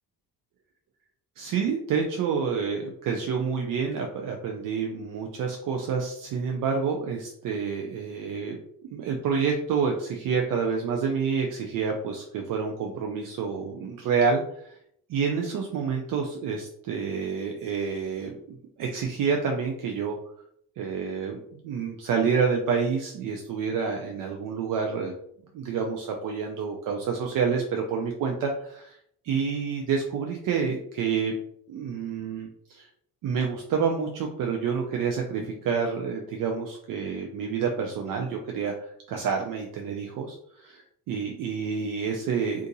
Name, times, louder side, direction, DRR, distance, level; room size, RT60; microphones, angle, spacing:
voice 1, 1.4-8.6 8.8-14.8 15.1-20.2 20.8-25.1 25.5-29.0 29.2-31.3 31.7-32.9 33.2-42.7, right 6 dB, 60° right, 2 dB, 0.5 m, -28 dB
2.7 x 2.5 x 3.8 m, 0.69 s
cardioid pair, 145°, 37 cm